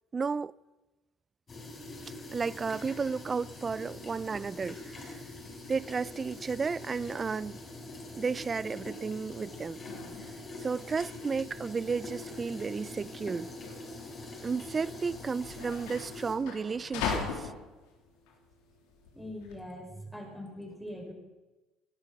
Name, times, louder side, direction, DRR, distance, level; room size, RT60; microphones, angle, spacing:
voice 1, 0.1-0.5 2.3-5.2 5.7-7.6 8.2-9.8 10.6-13.5 14.4-17.5, right 5 dB, 35° right, 0.4 m, -33 dB
sound 1, 1.5-16.4, left 2 dB, 35° left, 5.1 m, -44 dB
sound 2, 9.5-19.6, left 5 dB, 75° left, 2.8 m, -41 dB
voice 2, 19.1-21.1, left 1 dB, 5° left, 5.1 m, -42 dB
19.5 x 12.0 x 5.8 m
hypercardioid pair, 60°, 0 cm